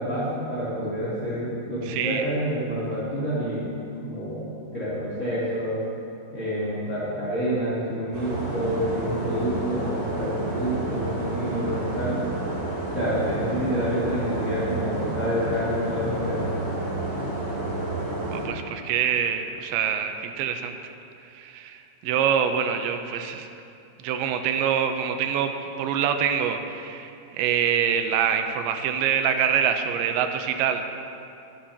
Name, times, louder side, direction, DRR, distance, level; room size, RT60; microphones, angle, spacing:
voice 1, 0.0-3.7 4.0-4.5 4.7-5.8 6.3-12.3 12.8-16.4, equal, 20° left, -11 dB, 2.3 m, -28 dB
voice 2, 1.9-2.2 18.3-20.9 21.2-23.5 24.0-30.8, right 8 dB, 85° right, 6 dB, 2.9 m, -25 dB
sound 1, 8.1-18.5, right 2 dB, 60° right, 4.7 m, -30 dB
21.5 x 9.8 x 2.9 m, 2.7 s
omnidirectional pair, 5.2 m